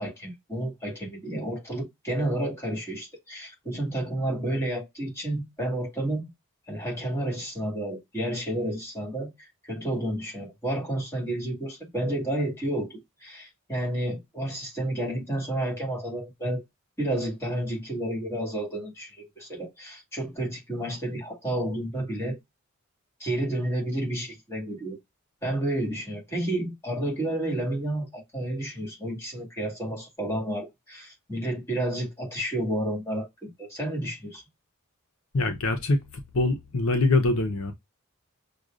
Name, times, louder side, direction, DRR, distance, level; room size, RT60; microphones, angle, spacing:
voice 1, 0.0-6.2 6.7-16.6 17.0-22.4 23.2-25.0 25.4-34.4, right 1 dB, 10° left, 2.1 m, -31 dB
voice 2, 35.3-37.7, left 2 dB, 65° left, 0.7 m, -24 dB
6.2 x 2.3 x 2.5 m
head